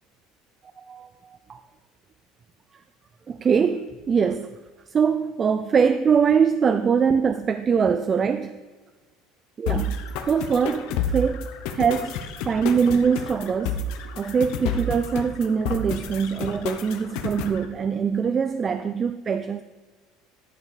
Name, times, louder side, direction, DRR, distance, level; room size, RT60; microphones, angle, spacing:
voice 1, 0.8-1.6 3.3-4.6 4.9-8.6 9.6-11.5 11.7-13.8 14.2-19.6, right 6 dB, 30° right, 11 dB, 0.4 m, -23 dB
sound 1, 9.7-17.6, left 4 dB, 70° left, 1.0 m, -30 dB
11.0 x 6.8 x 4.9 m, 1.4 s
supercardioid pair, 125°, 0 cm